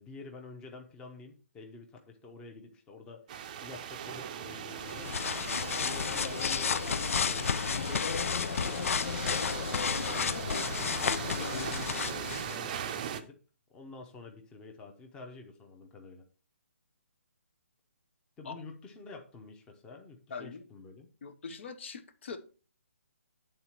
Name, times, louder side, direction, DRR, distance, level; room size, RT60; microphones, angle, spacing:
voice 1, 0.0-3.2 3.6-5.3 5.8-10.3 10.7-13.4 13.7-16.2 18.4-21.1, left 3 dB, 10° left, 0.8 m, -48 dB
sound 1, 3.3-13.2, right 8 dB, 30° right, 0.6 m, -40 dB
sound 2, 4.8-12.6, left 6 dB, 70° left, 0.3 m, -32 dB
voice 2, 20.3-20.7 21.2-22.4, left 5 dB, 50° left, 0.8 m, -42 dB
8.9 x 3.9 x 4.4 m
hypercardioid pair, 155°, 8 cm